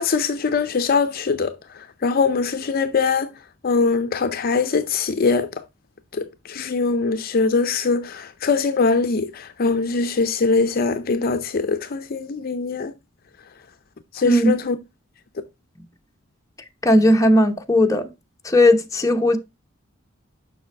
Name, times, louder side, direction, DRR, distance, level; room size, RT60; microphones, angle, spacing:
voice 1, 0.0-1.5 2.0-3.3 3.6-5.6 6.1-12.9 14.1-14.8, left 4 dB, 50° left, 0.5 m, -22 dB
voice 2, 16.8-18.0 18.4-19.4, left 1 dB, 15° left, 0.8 m, -16 dB
7.0 x 5.9 x 3.3 m
head